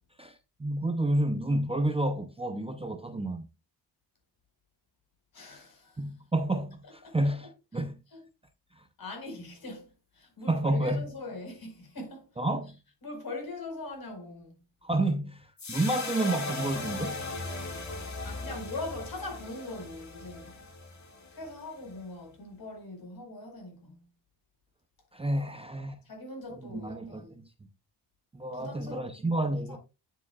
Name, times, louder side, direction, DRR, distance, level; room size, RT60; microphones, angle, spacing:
voice 1, 0.2-3.5 6.0-8.0 8.8-8.9 10.5-11.1 12.4-12.7 14.8-17.2 25.1-26.0 26.5-27.5 28.3-29.8, right 1 dB, 15° right, 0.6 m, -30 dB
voice 2, 5.3-6.0 7.0-7.3 8.1-8.2 9.0-12.3 13.0-14.6 18.2-20.6 21.3-24.1 26.0-27.3 28.5-29.8, left 2 dB, 55° left, 4.7 m, -41 dB
sound 1, 15.6-22.0, left 3 dB, 40° left, 2.1 m, -38 dB
9.5 x 8.8 x 2.4 m
wide cardioid pair, 140°, 42 cm